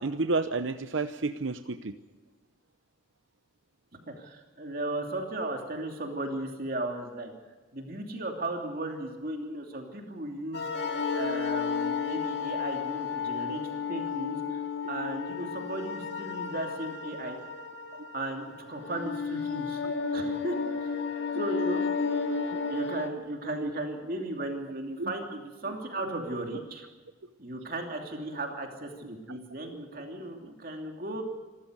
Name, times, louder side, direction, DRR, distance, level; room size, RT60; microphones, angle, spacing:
voice 1, 0.0-2.0 19.8-19.9 23.6-23.7 25.0-25.1 26.0-26.1 29.3-29.4, right 3 dB, 75° right, 10 dB, 0.8 m, -31 dB
voice 2, 4.2-7.3 7.7-10.7 11.1-13.6 13.9-14.6 14.9-17.4 18.1-19.8 20.1-21.0 21.3-21.9 22.7-26.9 27.4-31.2, right 1 dB, 45° right, 2 dB, 3.0 m, -35 dB
sound 1, 10.5-23.1, left 5 dB, 55° left, 2.4 m, -32 dB
27.0 x 14.5 x 8.1 m, 1.3 s
head